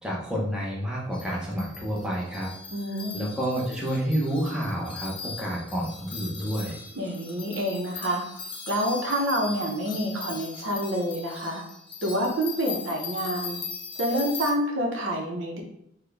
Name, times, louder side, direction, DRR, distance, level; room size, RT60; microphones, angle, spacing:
voice 1, 0.0-2.5 3.1-6.8, equal, 5° right, -5 dB, 0.7 m, -29 dB
sound 1, 1.1-14.5, left 5 dB, 25° left, 0.4 m, -40 dB
voice 2, 2.7-3.3 6.9-8.2 8.7-11.6 12.0-13.6 14.0-15.6, equal, 75° right, 0 dB, 0.8 m, -28 dB
4.3 x 2.2 x 3.4 m, 0.75 s
head